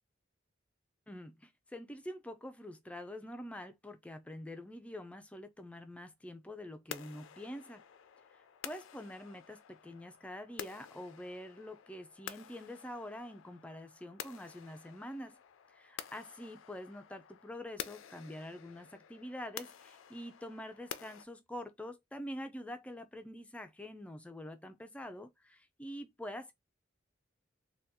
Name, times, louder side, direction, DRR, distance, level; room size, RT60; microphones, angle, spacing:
voice 1, 1.1-7.8 8.3-15.4 15.7-26.5, left 1 dB, 5° left, 0.4 m, -46 dB
sound 1, 6.9-21.2, left 9 dB, 85° left, 0.4 m, -50 dB
2.8 x 2.3 x 3.4 m
head